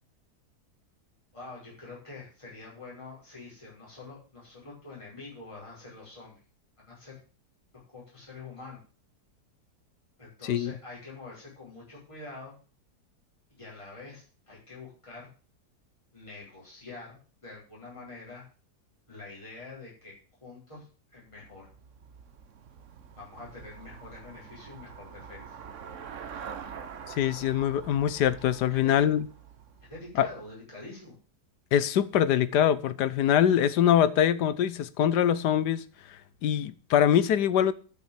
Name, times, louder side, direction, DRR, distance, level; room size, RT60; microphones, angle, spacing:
voice 1, 1.3-6.4 6.8-7.2 7.9-8.8 10.2-12.5 13.6-15.3 16.1-18.4 19.1-20.1 20.4-21.7 23.2-25.6 28.7-29.0 29.9-31.2, left 3 dB, 20° left, 6.0 m, -46 dB
Traffic noise roadway noise / Bicycle, 21.3-30.5, right 7 dB, 55° right, 1.2 m, -45 dB
voice 2, 27.1-29.2 30.2-30.3 31.7-37.7, left 10 dB, 90° left, 1.4 m, -24 dB
11.5 x 6.5 x 7.4 m
omnidirectional pair, 1.7 m